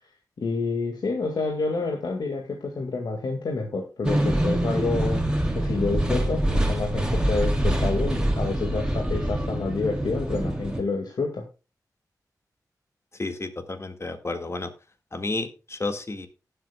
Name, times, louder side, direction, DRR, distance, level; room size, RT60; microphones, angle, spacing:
voice 1, 0.4-5.3 5.6-11.4, left 3 dB, 85° left, 2 dB, 1.9 m, -28 dB
sound 1, 4.0-10.8, right 1 dB, 10° right, 2.6 m, -25 dB
voice 2, 13.1-14.7 15.1-16.3, left 2 dB, 40° left, 7 dB, 1.8 m, -31 dB
18.0 x 7.9 x 2.3 m, 0.31 s
wide cardioid pair, 70°, 7 cm